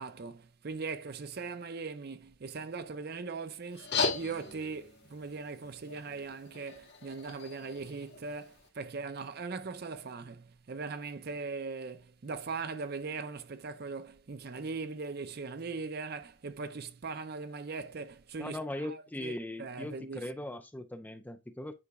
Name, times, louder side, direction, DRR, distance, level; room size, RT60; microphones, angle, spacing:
voice 1, 0.0-20.3, right 4 dB, 50° right, 0.5 m, -40 dB
sound 1, 3.7-8.7, left 4 dB, 60° left, 1.9 m, -38 dB
voice 2, 18.4-21.7, left 1 dB, 10° left, 0.4 m, -39 dB
9.7 x 5.0 x 2.3 m
head